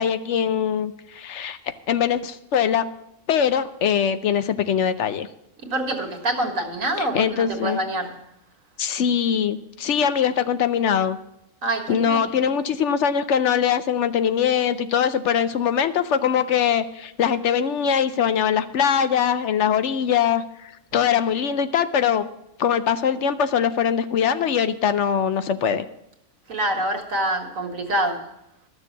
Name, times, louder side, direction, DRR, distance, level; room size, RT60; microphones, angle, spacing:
voice 1, 0.0-1.6 1.9-2.8 3.3-5.3 7.0-7.8 8.8-11.2 11.9-22.3 22.6-25.9, left 8 dB, 65° left, 11 dB, 0.9 m, -22 dB
voice 2, 5.6-8.2 11.6-12.2 26.5-28.3, right 1 dB, 85° right, 4 dB, 1.9 m, -26 dB
12.5 x 6.8 x 7.2 m, 0.81 s
omnidirectional pair, 1.4 m